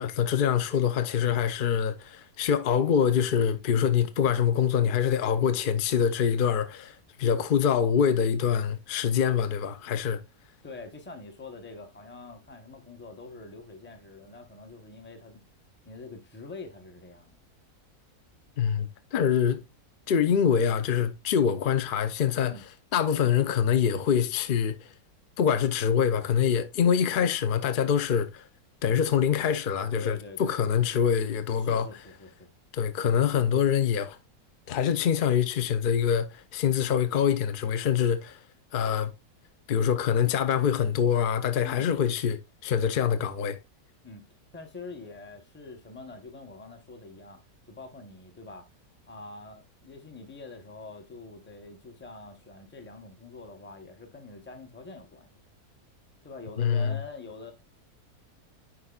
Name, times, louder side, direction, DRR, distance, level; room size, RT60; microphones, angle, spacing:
voice 1, 0.0-10.2 18.6-19.6 20.1-22.5 22.9-24.7 25.4-28.4 28.8-31.9 32.7-34.2 34.7-38.4 38.7-39.1 39.7-43.6 56.6-57.0, left 8 dB, 60° left, 0.5 m, -25 dB
voice 2, 10.6-15.4 15.8-17.4 22.4-22.6 30.0-30.7 31.6-32.5 33.1-33.2 41.6-41.9 44.0-44.3 44.5-48.7 49.1-55.3 56.2-57.5, left 3 dB, 10° left, 0.8 m, -45 dB
9.6 x 4.5 x 2.3 m
omnidirectional pair, 1.6 m